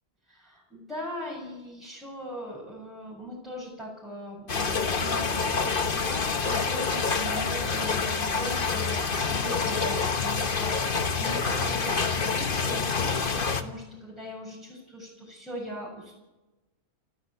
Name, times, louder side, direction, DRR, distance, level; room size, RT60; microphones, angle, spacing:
voice 1, 0.3-16.1, equal, ahead, -5 dB, 7.1 m, -39 dB
sound 1, 4.5-13.6, left 5 dB, 45° left, 1.3 m, -27 dB
29.5 x 12.5 x 8.3 m, 1.1 s
omnidirectional pair, 1.3 m